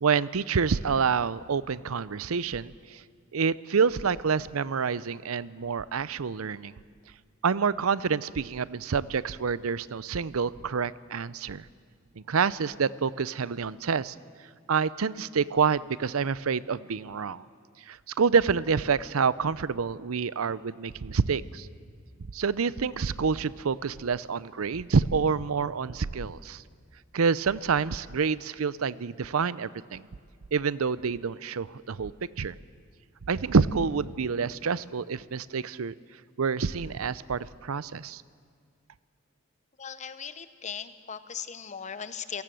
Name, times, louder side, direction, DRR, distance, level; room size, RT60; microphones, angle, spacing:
voice 1, 0.0-3.0 3.3-6.7 7.4-11.7 12.2-14.2 14.7-17.4 17.9-21.7 22.3-26.6 27.1-30.1 30.5-32.1 32.4-32.6 33.3-35.9 36.4-38.2, right 5 dB, 85° right, 18 dB, 0.6 m, -27 dB
voice 2, 39.8-42.4, left 7 dB, 35° left, 12 dB, 1.0 m, -38 dB
27.5 x 18.0 x 7.7 m, 2.1 s
head